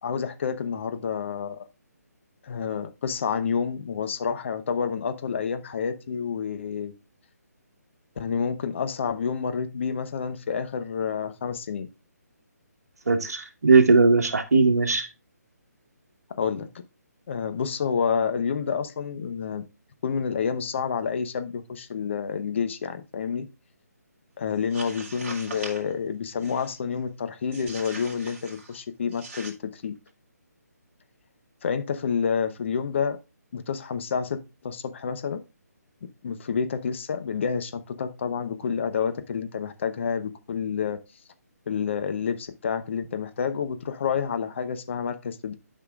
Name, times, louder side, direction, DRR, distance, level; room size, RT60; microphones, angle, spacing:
voice 1, 0.0-1.6 2.4-6.9 8.2-11.9 16.4-16.7 17.3-19.6 20.0-23.5 24.4-29.9 31.6-33.2 33.5-35.4 36.2-41.0 41.7-45.6, left 6 dB, 45° left, 0.9 m, -29 dB
voice 2, 13.1-15.1, right 3 dB, 65° right, 1.6 m, -19 dB
sound 1, 24.6-25.9 26.4-26.8 27.5-28.8 29.1-29.5, right 3 dB, 45° right, 2.4 m, -41 dB
11.0 x 5.8 x 2.4 m
figure-of-eight pair, 145°, 9 cm